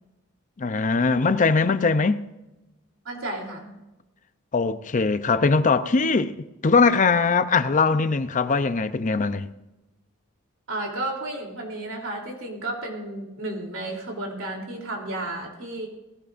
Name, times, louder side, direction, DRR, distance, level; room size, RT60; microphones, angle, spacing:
voice 1, 0.6-2.2 4.5-9.5, left 4 dB, 40° left, 0.6 m, -21 dB
voice 2, 3.0-3.8 10.7-15.9, right 2 dB, 75° right, 3.3 m, -32 dB
18.0 x 16.0 x 2.6 m
head